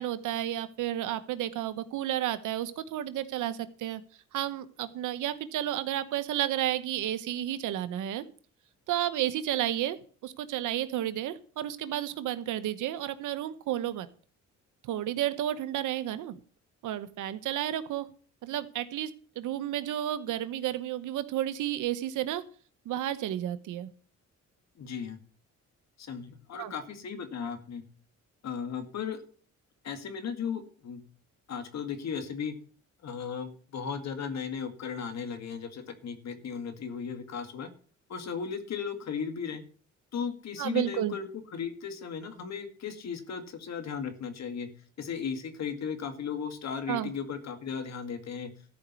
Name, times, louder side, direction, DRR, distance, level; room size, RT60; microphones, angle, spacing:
voice 1, 0.0-4.0 4.3-8.2 8.9-10.0 10.2-14.1 14.8-16.3 16.8-18.1 18.4-22.4 22.8-23.9 26.6-26.7 40.6-41.1 46.9-47.1, right 12 dB, 85° right, 12 dB, 1.1 m, -32 dB
voice 2, 24.8-25.2 26.0-27.8 28.4-29.3 29.8-31.0 31.5-32.5 33.0-37.7 38.1-39.6 40.1-44.7 45.0-48.5, left 6 dB, 60° left, 8 dB, 2.2 m, -36 dB
13.5 x 5.3 x 8.3 m, 0.42 s
cardioid pair, 90°, 30 cm